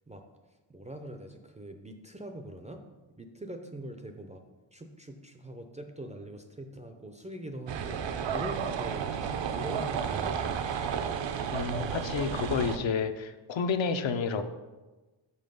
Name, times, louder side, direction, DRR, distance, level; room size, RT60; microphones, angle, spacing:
voice 1, 0.7-2.8 3.2-4.4 4.7-8.0 8.3-10.3, right 1 dB, 15° right, 5 dB, 0.4 m, -42 dB
sound 1, 7.7-12.8, right 7 dB, 65° right, 0.6 m, -32 dB
voice 2, 11.5-14.4, left 5 dB, 65° left, 8 dB, 0.7 m, -30 dB
6.1 x 5.5 x 5.3 m, 1.2 s
wide cardioid pair, 140°, 49 cm